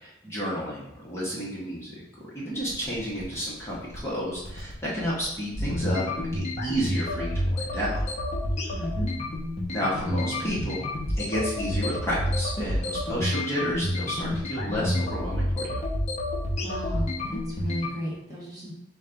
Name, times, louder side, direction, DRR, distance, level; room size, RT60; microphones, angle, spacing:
voice 1, 0.0-8.0 8.7-8.8 9.7-10.9 11.2-15.8, equal, 15° left, -7 dB, 1.1 m, -31 dB
sound 1, 2.6-17.9, left 1 dB, 40° left, 0.8 m, -29 dB
voice 2, 8.7-9.1 16.6-18.7, equal, 20° right, -6 dB, 1.1 m, -34 dB
5.2 x 2.3 x 3.8 m, 0.83 s
head